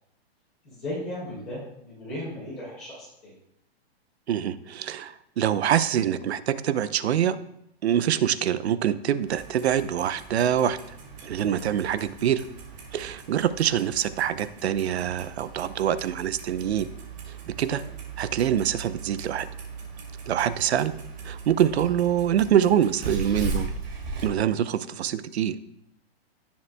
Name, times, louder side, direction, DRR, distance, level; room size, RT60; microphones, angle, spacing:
voice 1, 0.6-3.4 17.7-17.9, left 1 dB, 5° left, -8 dB, 0.4 m, -36 dB
voice 2, 4.3-7.4 7.8-10.8 11.2-12.4 12.9-16.9 17.3-17.8 18.2-19.5 20.3-20.9 21.2-23.7 24.2-25.6, right 10 dB, 80° right, 14 dB, 0.7 m, -25 dB
Clock, 9.2-24.3, right 4 dB, 40° right, 2.5 m, -38 dB
17.0 x 7.2 x 2.2 m, 0.79 s
hypercardioid pair, 175°, 32 cm